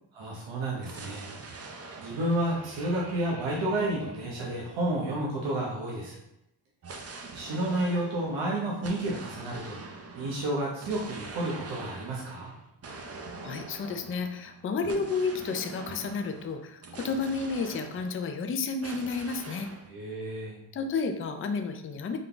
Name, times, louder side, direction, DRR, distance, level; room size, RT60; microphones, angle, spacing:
voice 1, 0.1-1.2 2.0-6.2 7.3-9.8 10.1-12.5 19.9-20.6, right 1 dB, 65° right, -4 dB, 1.0 m, -31 dB
sound 1, 0.8-5.5 6.8-18.5 18.8-19.9, right 3 dB, 30° right, 0.5 m, -45 dB
voice 2, 13.4-19.7 20.7-22.2, left 4 dB, 30° left, 6 dB, 0.4 m, -31 dB
3.7 x 2.3 x 3.8 m, 0.84 s
cardioid pair, 80°, 49 cm